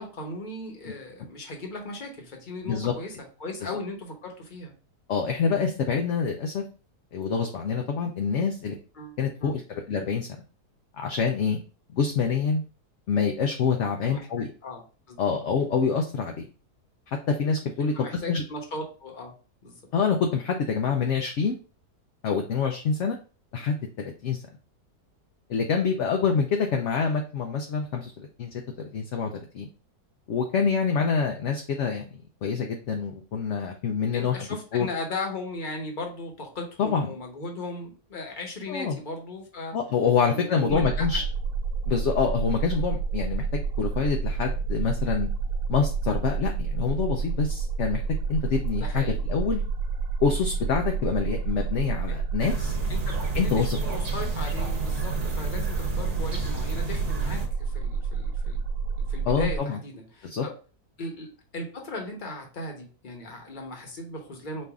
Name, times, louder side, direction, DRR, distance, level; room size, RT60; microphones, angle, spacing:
voice 1, 0.0-4.7 9.0-9.5 14.0-14.8 15.1-15.2 17.9-19.3 19.6-19.8 34.1-39.8 40.3-41.1 48.8-49.2 52.1-52.2 52.9-58.6 59.1-60.5 61.0-64.7, left 2 dB, 35° left, 2 dB, 1.1 m, -37 dB
voice 2, 5.1-6.6 7.1-8.8 9.2-10.3 11.0-11.6 11.9-12.6 13.1-14.5 15.2-16.5 17.1-18.4 19.9-21.6 22.2-23.2 23.5-24.4 25.5-29.7 30.3-32.1 32.4-34.9 36.8-37.1 38.7-39.0 39.7-41.2 41.9-45.3 45.7-48.0 48.3-49.6 50.2-52.8 53.3-53.8 59.3-59.8 60.2-60.4, left 6 dB, 60° left, 3 dB, 0.8 m, -26 dB
sound 1, 40.7-59.6, right 5 dB, 80° right, 1.3 m, -29 dB
sound 2, 52.4-57.5, right 1 dB, 50° right, 1.4 m, -33 dB
5.4 x 2.6 x 3.5 m, 0.36 s
omnidirectional pair, 1.6 m